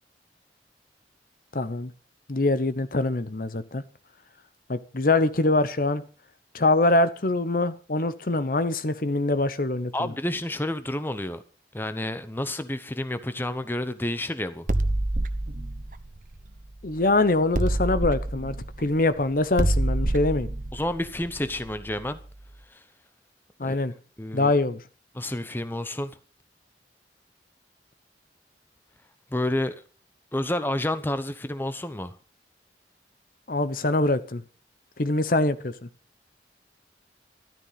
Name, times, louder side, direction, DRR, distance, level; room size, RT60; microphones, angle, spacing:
voice 1, 1.5-1.9 2.3-3.8 4.7-6.0 6.5-10.1 16.8-20.5 23.6-23.9 24.3-24.8 33.5-34.4 35.0-35.7, left 2 dB, 50° left, 1.0 m, -24 dB
voice 2, 9.9-11.4 11.7-14.7 20.7-22.2 22.7-22.8 23.6-23.8 24.2-24.5 25.1-26.2 29.3-29.7 30.3-32.2, left 1 dB, 10° left, 0.9 m, -30 dB
sound 1, 14.7-17.0 17.5-22.2, right 1 dB, 50° right, 1.1 m, -27 dB
13.5 x 12.0 x 5.8 m
head